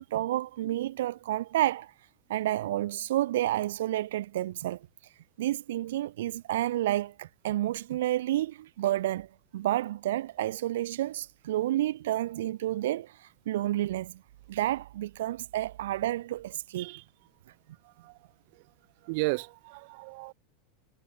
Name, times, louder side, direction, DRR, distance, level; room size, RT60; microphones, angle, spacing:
voice 1, 0.0-1.9 2.3-4.8 5.4-9.3 9.5-14.2 14.5-16.9, right 14 dB, 80° right, 1.7 m, -30 dB
voice 2, 17.8-18.2 18.5-18.6 19.0-20.3, right 28 dB, 50° right, 2.3 m, -34 dB
supercardioid pair, 165°, 0 cm